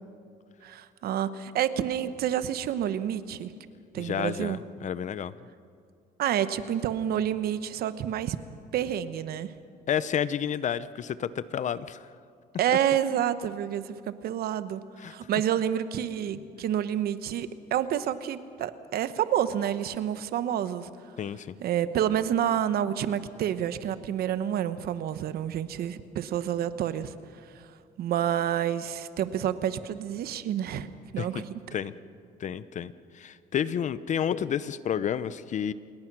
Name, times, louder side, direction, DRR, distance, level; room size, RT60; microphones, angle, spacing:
voice 1, 0.6-3.5 3.9-4.6 6.2-8.4 8.7-9.5 12.6-20.9 21.6-27.1 28.0-31.5, right 10 dB, 65° right, 13 dB, 1.1 m, -29 dB
voice 2, 4.0-5.3 9.9-12.1 15.0-15.1 21.2-21.5 31.2-31.4 31.7-31.9 32.4-35.7, left 9 dB, 45° left, 16 dB, 0.8 m, -30 dB
27.5 x 20.5 x 6.2 m, 2.3 s
cardioid pair, 110°, 17 cm